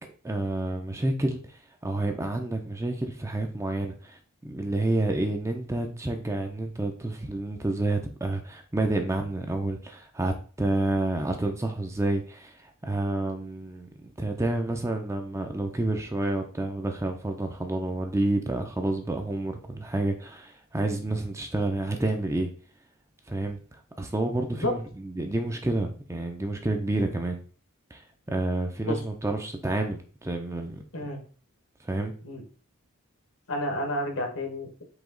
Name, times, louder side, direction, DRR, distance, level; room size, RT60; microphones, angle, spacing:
voice 1, 0.2-1.4 1.8-12.5 12.8-22.5 23.3-23.6 24.0-27.4 27.9-28.0 28.3-30.8 31.8-32.1, right 2 dB, 15° right, 0.4 m, -29 dB
voice 2, 33.5-34.8, left 1 dB, 70° left, 1.1 m, -30 dB
4.9 x 2.9 x 3.8 m
head